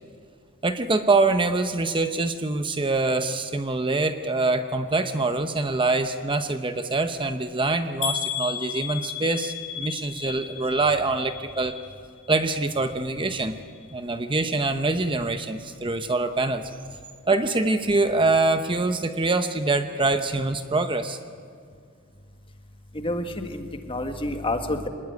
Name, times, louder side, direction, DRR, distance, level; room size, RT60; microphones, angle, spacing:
voice 1, 0.6-11.8 12.3-13.6 13.9-16.7 17.3-21.2, right 3 dB, 20° right, 8 dB, 0.8 m, -24 dB
sound 1, 8.0-12.0 12.3-12.9 13.4-13.5 13.8-13.9, left 8 dB, 55° left, 2.9 m, -33 dB
voice 2, 22.9-24.9, left 1 dB, 25° left, 6 dB, 1.7 m, -29 dB
25.5 x 19.5 x 9.5 m, 2.2 s
head